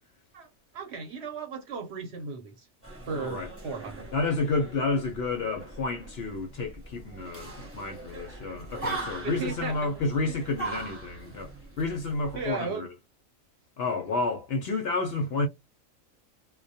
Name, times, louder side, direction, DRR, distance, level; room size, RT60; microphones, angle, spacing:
voice 1, 0.7-2.7 3.1-4.1 7.3-7.5 8.5-10.0 12.3-12.9, right 4 dB, 60° right, 0.9 m, -36 dB
sound 1, 2.8-12.5, right 3 dB, 10° right, 0.8 m, -41 dB
voice 2, 3.1-3.5 4.1-12.9 13.8-15.5, left 3 dB, 65° left, 0.7 m, -30 dB
2.2 x 2.1 x 2.6 m
omnidirectional pair, 1.4 m